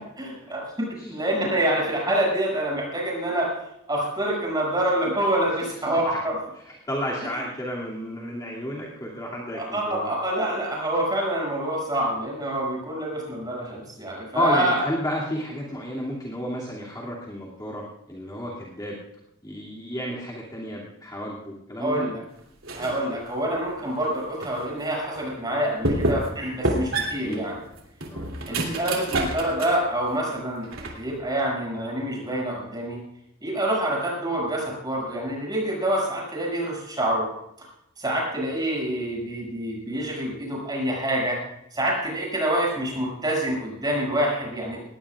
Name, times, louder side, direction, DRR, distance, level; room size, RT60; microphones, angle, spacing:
voice 1, 0.2-3.5 3.9-6.4 9.5-14.8 21.8-22.2 22.8-27.6 28.5-30.7 30.9-33.0 33.4-37.3 38.0-41.4 41.7-44.8, right 1 dB, 20° right, -2 dB, 6.8 m, -26 dB
voice 2, 6.7-10.1 14.3-19.0 19.4-22.1 27.0-27.5 28.1-28.6, equal, 20° left, -5 dB, 2.6 m, -31 dB
sound 1, 22.6-23.1 23.5-24.6 25.2-25.3 25.8-26.4 26.6-29.9 30.2-31.2, right 1 dB, 80° right, 3.0 m, -28 dB
20.0 x 18.0 x 2.5 m, 0.79 s
head